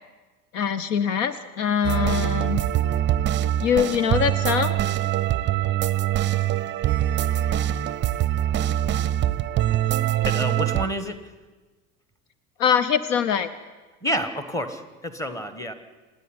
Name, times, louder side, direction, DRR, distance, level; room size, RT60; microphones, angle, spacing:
voice 1, 0.5-2.6 3.6-4.8 12.6-13.5, left 7 dB, 55° left, 14 dB, 1.0 m, -23 dB
sound 1, 1.8-10.9, right 12 dB, 25° right, 0.7 m, -23 dB
voice 2, 10.3-11.2 14.0-15.7, equal, 5° left, 10 dB, 1.7 m, -29 dB
26.5 x 10.0 x 9.7 m, 1.3 s
figure-of-eight pair, 75°, 44 cm